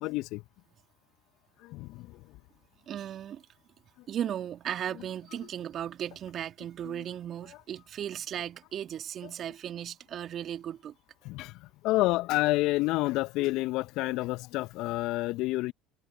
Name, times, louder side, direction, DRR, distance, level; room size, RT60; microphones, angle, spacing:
voice 1, 0.0-0.4 1.6-2.2 6.8-7.0 11.2-15.7, left 19 dB, 60° left, 1.1 m, -29 dB
voice 2, 2.9-3.4 4.1-10.9, right 10 dB, 45° right, 2.8 m, -36 dB
figure-of-eight pair, 65°, 0 cm